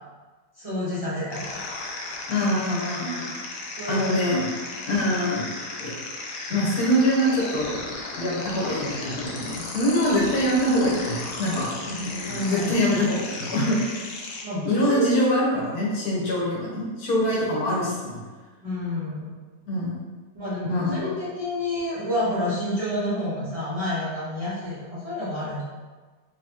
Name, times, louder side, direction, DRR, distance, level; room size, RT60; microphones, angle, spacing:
voice 1, 0.6-1.7 3.8-4.4 12.2-12.8 14.4-15.0 18.6-19.3 20.3-25.6, left 1 dB, 25° right, -11 dB, 1.0 m, -29 dB
sound 1, 1.3-14.4, left 3 dB, 80° left, 1.2 m, -35 dB
voice 2, 2.3-3.3 3.9-4.5 4.9-5.4 5.8-5.9 6.5-7.8 8.2-13.9 14.6-18.2 19.7-20.1 20.6-21.1, equal, 65° left, -5 dB, 1.4 m, -24 dB
4.1 x 3.0 x 2.8 m, 1.3 s
omnidirectional pair, 1.8 m